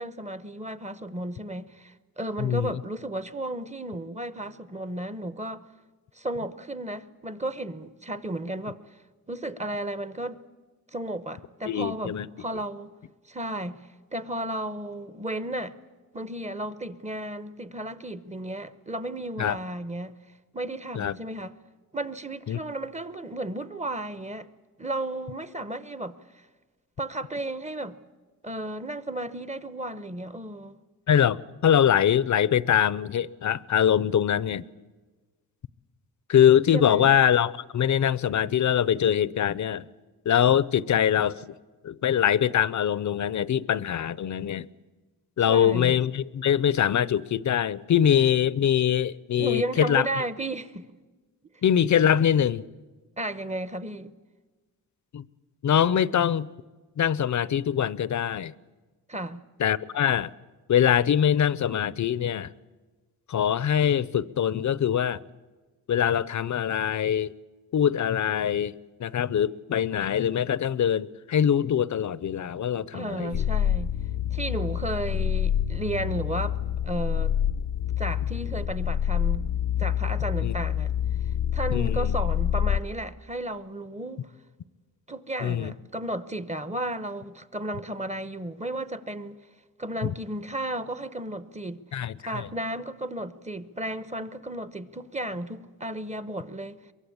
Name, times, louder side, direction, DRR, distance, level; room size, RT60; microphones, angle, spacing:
voice 1, 0.0-5.6 6.2-8.8 9.3-10.4 10.9-12.9 13.3-13.8 14.1-15.8 16.1-20.2 20.5-21.6 21.9-24.5 24.8-26.1 27.0-28.0 28.4-30.8 36.7-37.1 45.5-46.0 49.4-50.9 53.2-54.1 59.1-59.4 72.9-73.9 74.3-76.6 76.8-77.3 78.0-79.4 79.8-80.9 81.5-84.3 85.1-89.4 89.8-91.8 92.2-96.8, right 1 dB, 20° right, 1.0 m, -33 dB
voice 2, 2.4-2.8 11.7-12.3 19.4-19.6 20.9-21.1 22.5-22.6 31.1-34.6 36.3-39.8 40.3-41.4 41.8-44.7 45.4-50.1 51.6-52.6 55.1-55.2 55.6-56.5 57.0-58.5 59.6-60.3 60.7-62.5 63.3-65.2 65.9-67.3 67.7-68.7 69.0-73.4 80.4-80.5 81.7-82.2 85.4-85.7 90.0-90.1 91.9-92.5, left 9 dB, 55° left, 0.7 m, -23 dB
sound 1, 73.3-82.8, left 9 dB, 90° left, 0.8 m, -27 dB
23.0 x 23.0 x 8.6 m
cardioid pair, 100°, 35 cm